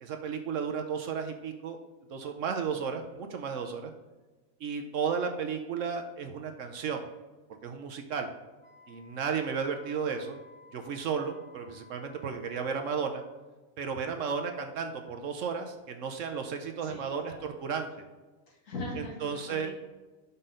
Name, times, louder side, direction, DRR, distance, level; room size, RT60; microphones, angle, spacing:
voice 1, 0.0-1.8 2.1-3.9 4.6-7.1 7.6-8.3 8.9-10.4 10.7-13.2 13.8-18.1 19.2-19.7, right 6 dB, 65° right, 5 dB, 0.9 m, -33 dB
Wind instrument woodwind instrument, 8.6-13.4, left 3 dB, 35° left, 1.7 m, -56 dB
voice 2, 16.8-17.9 18.5-19.8, left 2 dB, 60° left, -3 dB, 2.1 m, -41 dB
5.8 x 5.5 x 3.8 m, 1.2 s
omnidirectional pair, 1.5 m